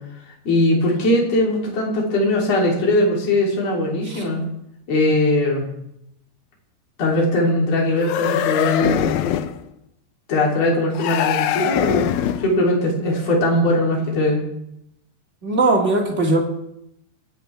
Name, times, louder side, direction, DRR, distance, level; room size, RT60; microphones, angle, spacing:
voice 1, 0.4-4.4 4.9-5.7 7.0-9.1 10.3-14.4, left 1 dB, 40° left, -3 dB, 3.9 m, -20 dB
sound 1, 8.0-9.6 10.9-12.6, left 10 dB, 85° left, 2.1 m, -22 dB
voice 2, 15.4-16.4, right 2 dB, 30° right, -2 dB, 1.4 m, -19 dB
27.0 x 9.3 x 3.5 m, 0.79 s
omnidirectional pair, 5.1 m